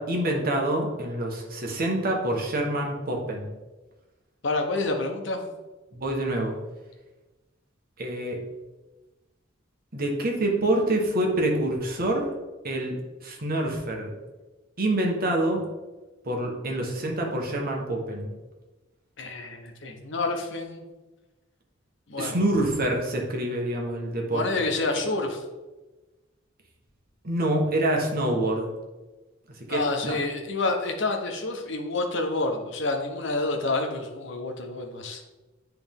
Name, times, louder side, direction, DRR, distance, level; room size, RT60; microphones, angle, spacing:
voice 1, 0.0-3.5 5.9-6.6 8.0-8.4 9.9-12.3 12.6-14.1 14.8-15.6 16.2-18.3 22.2-24.5 27.2-28.7 29.7-30.2, right 1 dB, 50° right, 1 dB, 1.3 m, -26 dB
voice 2, 4.4-5.5 19.2-20.8 22.1-22.4 24.3-25.4 29.7-35.3, left 2 dB, 65° left, 3 dB, 1.0 m, -28 dB
10.0 x 3.4 x 3.6 m, 1.1 s
head